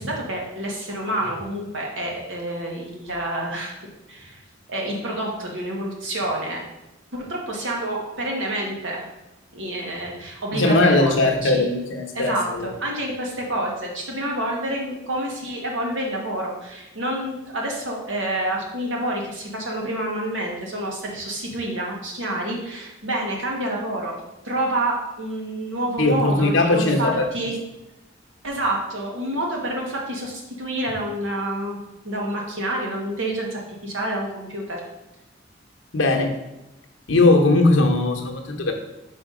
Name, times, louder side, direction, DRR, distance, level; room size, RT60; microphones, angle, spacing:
voice 1, 0.0-3.8 4.1-4.4 4.7-6.6 7.1-9.0 9.5-11.6 12.1-24.2 24.4-27.5 28.4-34.8, right 1 dB, 75° right, -1 dB, 1.5 m, -28 dB
voice 2, 10.5-12.7 26.0-27.3 35.9-36.3 37.1-38.7, left 2 dB, 70° left, 3 dB, 0.9 m, -19 dB
4.9 x 4.0 x 5.0 m, 0.96 s
head